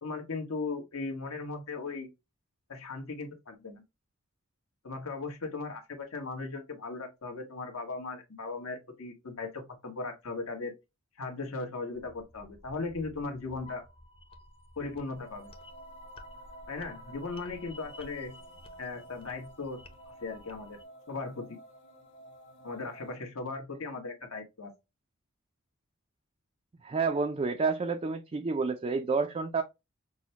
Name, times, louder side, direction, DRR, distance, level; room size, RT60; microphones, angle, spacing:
voice 1, 0.0-2.1 2.7-3.8 4.8-10.7 11.2-13.8 14.8-15.5 16.7-18.3 18.8-19.8 20.2-20.8 21.1-21.6 22.6-24.7, left 3 dB, 70° left, 1.3 m, -37 dB
sound 1, 11.9-20.8, left 1 dB, 25° left, 0.6 m, -52 dB
sound 2, 15.1-23.1, right 1 dB, 55° left, 1.6 m, -53 dB
voice 2, 26.8-29.6, right 4 dB, 30° right, 0.4 m, -29 dB
6.1 x 2.2 x 2.8 m
head